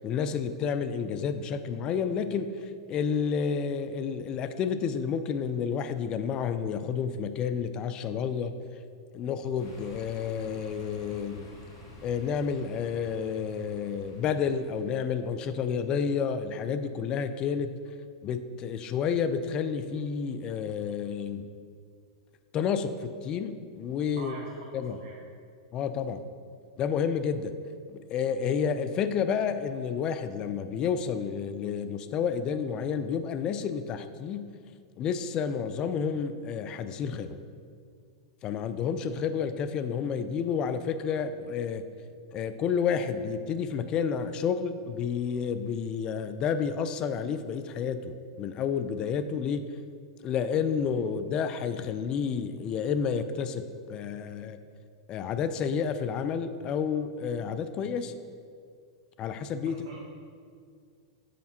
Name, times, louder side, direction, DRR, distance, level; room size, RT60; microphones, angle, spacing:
voice 1, 0.0-8.5 9.1-11.4 12.0-17.7 18.2-21.5 22.5-24.3 24.7-25.0 25.7-26.2 26.8-27.5 27.9-34.5 35.0-37.4 38.4-41.8 42.3-49.6 50.2-54.6 55.1-58.1 59.2-59.8, left 6 dB, 35° left, 10 dB, 0.3 m, -30 dB
sound 1, 9.6-15.3, left 1 dB, 60° left, 1.3 m, -50 dB
voice 2, 24.2-25.2 59.6-60.0, right 3 dB, 55° right, -3 dB, 0.9 m, -44 dB
7.5 x 5.1 x 2.9 m, 2.2 s
hypercardioid pair, 100°, 2 cm